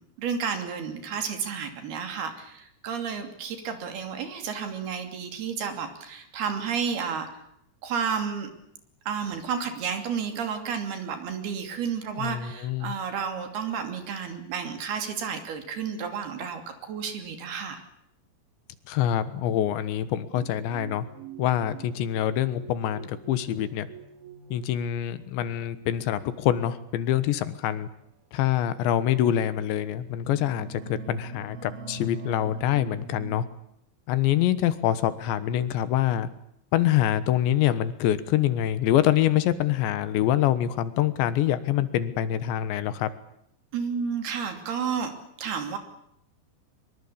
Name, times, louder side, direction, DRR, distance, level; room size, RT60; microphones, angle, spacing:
voice 1, 0.2-7.3 7.8-8.5 9.1-17.8 43.7-45.1 45.4-45.8, right 6 dB, 60° right, 7 dB, 4.6 m, -31 dB
voice 2, 12.2-12.9 18.9-21.1 21.4-23.9 24.5-27.9 28.3-33.4 34.1-36.3 36.7-43.1, left 11 dB, 80° left, 14 dB, 3.6 m, -25 dB
sound 1, 20.3-25.5 26.4-26.7 27.8-27.9 28.6-28.7 29.4-29.8 30.1-33.4, right 4 dB, 90° right, 5.1 m, -43 dB
24.0 x 23.0 x 8.6 m, 0.75 s
omnidirectional pair, 5.2 m